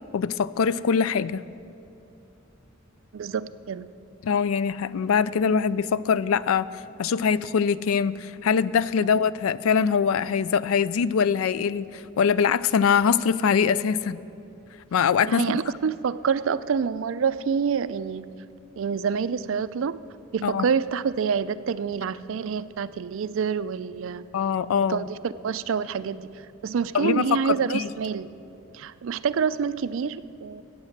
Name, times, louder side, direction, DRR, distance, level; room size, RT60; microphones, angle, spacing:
voice 1, 0.1-1.4 4.2-6.7 7.0-14.2 14.9-15.6 20.4-20.7 24.3-25.0 26.9-27.9, left 6 dB, 85° left, 18 dB, 0.4 m, -23 dB
voice 2, 3.1-3.9 15.3-18.2 18.8-20.0 20.3-24.2 24.9-26.3 26.6-28.3 28.7-30.6, right 6 dB, 65° right, 16 dB, 0.4 m, -27 dB
15.0 x 8.5 x 6.5 m, 2.8 s
head